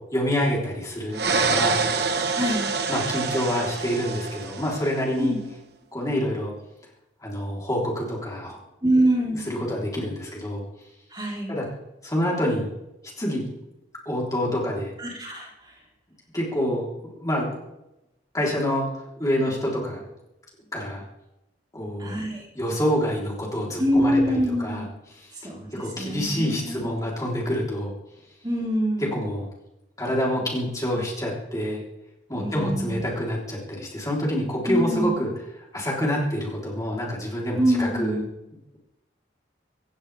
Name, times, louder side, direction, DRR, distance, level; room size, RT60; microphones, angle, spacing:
voice 1, 0.0-2.1 2.9-5.4 5.9-6.5 7.2-8.6 9.5-10.6 11.5-11.6 12.0-12.7 13.2-13.4 14.1-14.9 16.3-17.5 18.3-18.9 19.2-20.0 20.7-21.0 21.7-22.2 22.6-24.9 25.2-25.3 25.8-27.9 29.0-29.5 30.0-31.8 32.3-35.3 35.7-38.2, equal, 20° left, -4 dB, 3.7 m, -27 dB
sound 1, 1.1-5.0, right 4 dB, 60° right, 1.2 m, -26 dB
voice 2, 2.3-2.7 5.2-5.4 8.8-9.5 11.1-11.6 15.0-15.5 22.0-22.5 23.8-24.9 25.4-26.8 28.4-29.1 32.4-33.0 34.7-35.1 37.6-38.3, equal, 25° right, -3 dB, 4.0 m, -24 dB
26.5 x 15.0 x 3.5 m, 0.94 s
head